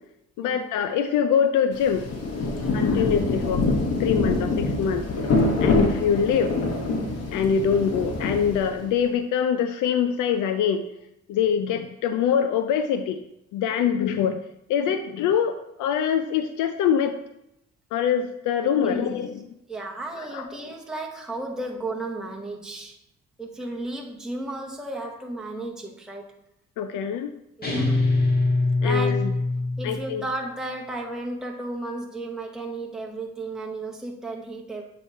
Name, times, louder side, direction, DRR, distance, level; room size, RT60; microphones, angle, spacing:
voice 1, 0.4-2.1 2.7-3.6 4.0-5.1 5.6-6.5 7.3-10.8 11.3-13.2 13.5-14.4 14.7-17.1 17.9-19.4 20.3-20.5 26.8-27.3 28.8-29.3 29.8-30.2, left 8 dB, 85° left, 8 dB, 0.5 m, -24 dB
Rain, 1.7-9.0, left 3 dB, 55° left, 1.2 m, -25 dB
voice 2, 2.5-2.8 13.8-14.0 14.8-15.0 18.6-19.2 19.7-23.0 23.4-26.3 27.6-28.0 28.8-29.3 29.8-34.8, right 2 dB, ahead, -1 dB, 0.9 m, -34 dB
sound 1, 27.6-30.2, left 2 dB, 30° left, 1.6 m, -23 dB
7.9 x 3.1 x 4.4 m, 0.84 s
cardioid pair, 90°, 30 cm